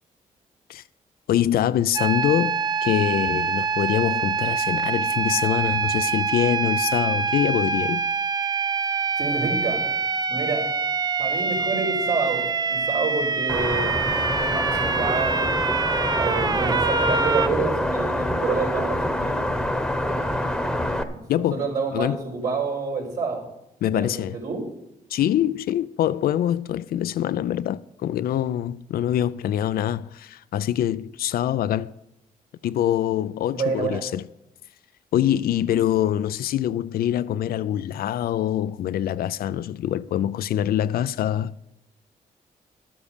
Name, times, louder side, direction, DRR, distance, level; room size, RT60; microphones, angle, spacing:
voice 1, 1.3-8.1 21.3-21.6 21.9-22.2 23.8-24.4 25.1-31.9 32.6-34.2 35.1-41.5, left 11 dB, 80° left, 0.4 m, -24 dB
sound 1, 1.9-17.5, right 5 dB, 25° right, 0.4 m, -25 dB
voice 2, 9.2-9.8 10.3-10.7 11.2-14.0 14.4-15.6 16.1-19.6 20.0-20.4 21.1-21.2 21.5-23.5 23.9-24.6 33.5-34.0 35.6-35.8, right 4 dB, 80° right, 4.5 m, -28 dB
sound 2, 13.5-21.0, left 1 dB, 5° left, 1.1 m, -26 dB
12.0 x 7.4 x 6.7 m
cardioid pair, 80°, 15 cm